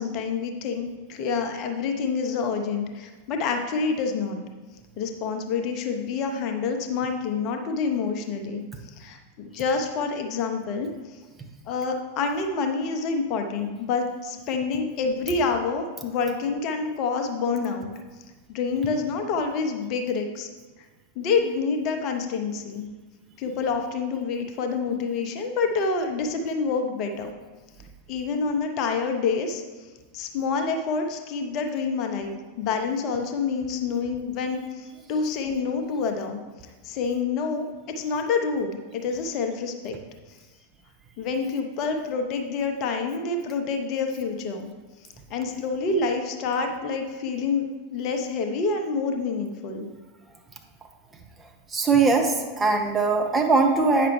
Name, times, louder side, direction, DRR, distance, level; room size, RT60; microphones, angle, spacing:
voice 1, 0.0-4.4 5.0-11.2 11.7-17.9 18.5-20.5 21.2-22.9 23.4-27.4 28.1-29.6 30.1-36.4 36.8-40.0 41.2-44.7 45.3-49.9, left 4 dB, 40° left, 5 dB, 0.7 m, -27 dB
voice 2, 51.7-54.1, right 4 dB, 15° right, 3 dB, 0.8 m, -21 dB
9.0 x 5.8 x 3.2 m, 1.3 s
figure-of-eight pair, 90°, 0 cm